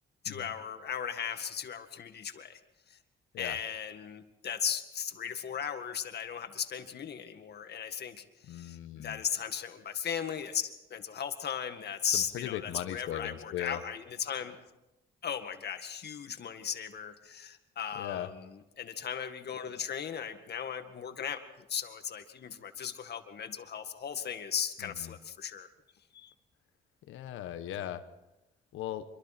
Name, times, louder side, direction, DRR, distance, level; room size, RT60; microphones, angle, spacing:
voice 1, 0.2-2.6 2.9-3.0 3.4-14.6 15.2-25.7 26.1-26.3, left 8 dB, 55° left, 7 dB, 2.0 m, -37 dB
voice 2, 8.5-9.2 12.1-13.8 17.9-18.3 24.8-25.1 27.1-28.0 28.7-29.0, left 11 dB, 90° left, 10 dB, 1.2 m, -38 dB
26.0 x 23.5 x 4.4 m, 0.95 s
cardioid pair, 90°, 20 cm